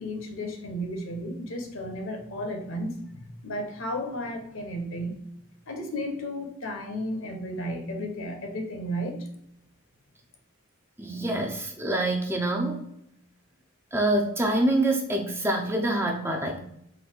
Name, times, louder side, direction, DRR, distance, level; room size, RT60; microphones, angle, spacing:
voice 1, 0.0-5.1 5.7-9.2, equal, 65° left, 4 dB, 0.9 m, -33 dB
voice 2, 11.0-12.8 13.9-16.6, right 1 dB, 10° right, 2 dB, 0.4 m, -26 dB
4.0 x 2.6 x 4.4 m, 0.76 s
head